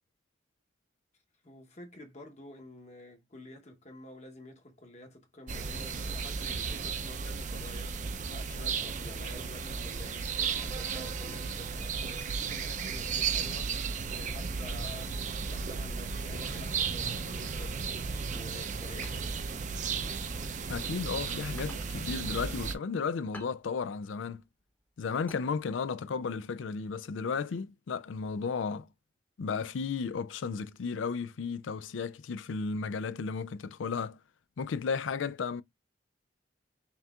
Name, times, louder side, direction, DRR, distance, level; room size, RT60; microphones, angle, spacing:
voice 1, 1.4-7.9 8.2-13.8 14.2-15.2 15.5-17.9 18.3-19.4, left 1 dB, 35° left, 1.0 m, -50 dB
sound 1, 5.5-22.7, right 5 dB, 40° right, 0.5 m, -34 dB
sound 2, 19.0-21.1 21.4-26.1, left 2 dB, 10° left, 0.9 m, -53 dB
voice 2, 20.7-24.4 25.0-28.9 29.4-34.2 34.6-35.6, left 5 dB, 90° left, 0.4 m, -34 dB
5.5 x 2.9 x 2.4 m
head